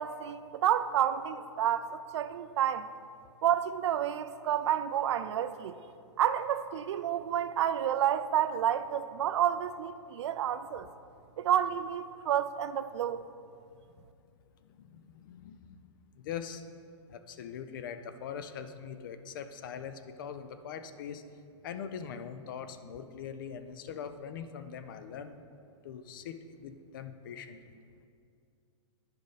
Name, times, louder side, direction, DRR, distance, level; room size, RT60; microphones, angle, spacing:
voice 1, 0.0-2.9 3.4-5.8 6.2-10.9 11.4-13.2, right 10 dB, 65° right, 0.4 m, -30 dB
voice 2, 14.8-15.8 16.2-16.6 17.1-21.2 21.6-25.4 25.8-27.6, left 7 dB, 40° left, 0.4 m, -42 dB
10.0 x 5.0 x 4.0 m
hypercardioid pair, 170°, 16 cm